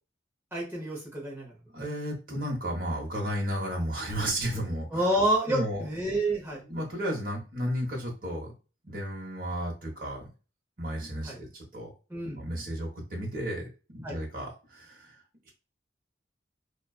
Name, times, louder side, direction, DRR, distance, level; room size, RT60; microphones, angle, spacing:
voice 1, 0.5-1.5 4.9-6.6 11.2-11.4 12.1-12.4 14.0-14.2, right 1 dB, 10° right, -4 dB, 0.8 m, -28 dB
voice 2, 1.7-5.1 5.5-5.9 6.5-8.5 8.8-10.3 10.8-11.9 12.3-15.5, equal, 50° right, -1 dB, 0.9 m, -33 dB
2.3 x 2.3 x 2.3 m, 0.33 s
head